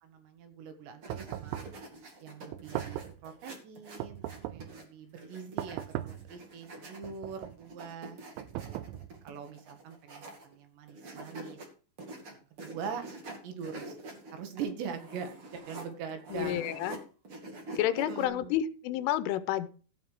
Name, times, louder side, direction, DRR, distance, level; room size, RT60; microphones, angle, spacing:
voice 1, 0.0-1.6 2.2-9.0 9.2-11.6 12.3-13.0 13.4-16.9 17.8-18.5, right 6 dB, 65° right, 6 dB, 3.7 m, -43 dB
sound 1, 1.0-4.8 5.2-10.5 10.9-11.7 12.0-17.0 17.2-18.3, right 2 dB, 40° right, 2.2 m, -46 dB
sound 2, 1.1-1.8 2.5-3.2 4.0-4.8 5.6-6.3 7.0-7.6 8.4-9.3, right 13 dB, 85° right, 3.1 m, -38 dB
voice 2, 16.3-17.0 17.8-19.7, left 12 dB, 85° left, 13 dB, 3.3 m, -30 dB
16.5 x 6.0 x 4.7 m, 0.37 s
omnidirectional pair, 5.6 m